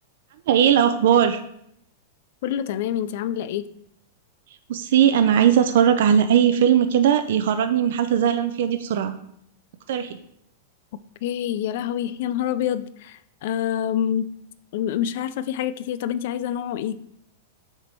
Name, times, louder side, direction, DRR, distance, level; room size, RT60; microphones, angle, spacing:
voice 1, 0.5-1.4 4.7-9.2 9.9-10.2, right 9 dB, 60° right, 8 dB, 0.4 m, -19 dB
voice 2, 2.4-3.7 11.2-14.3 14.7-17.0, left 10 dB, 55° left, 15 dB, 0.3 m, -26 dB
6.6 x 3.5 x 4.4 m, 0.73 s
supercardioid pair, 160°, 0 cm